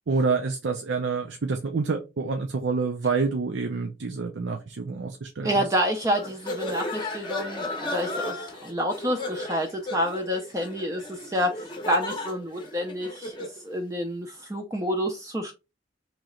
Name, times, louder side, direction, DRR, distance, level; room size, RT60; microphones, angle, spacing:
voice 1, 0.1-5.6, right 4 dB, 80° right, 0.5 m, -27 dB
voice 2, 5.4-15.5, equal, 15° right, 0.5 m, -28 dB
sound 1, 6.1-13.6, left 2 dB, 25° left, 0.7 m, -35 dB
3.1 x 2.9 x 3.7 m
head